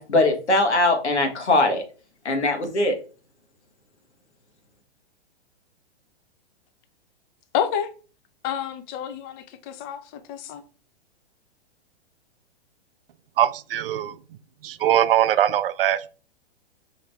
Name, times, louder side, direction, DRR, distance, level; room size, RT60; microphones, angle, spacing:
voice 1, 0.0-1.8 2.2-2.9, left 2 dB, 85° left, 1.4 m, -21 dB
voice 2, 7.5-7.9 8.4-10.6, left 9 dB, 25° left, 0.6 m, -29 dB
voice 3, 13.4-14.2 14.6-16.1, right 11 dB, 60° right, 0.5 m, -21 dB
5.0 x 2.8 x 3.3 m
hypercardioid pair, 120°, 33 cm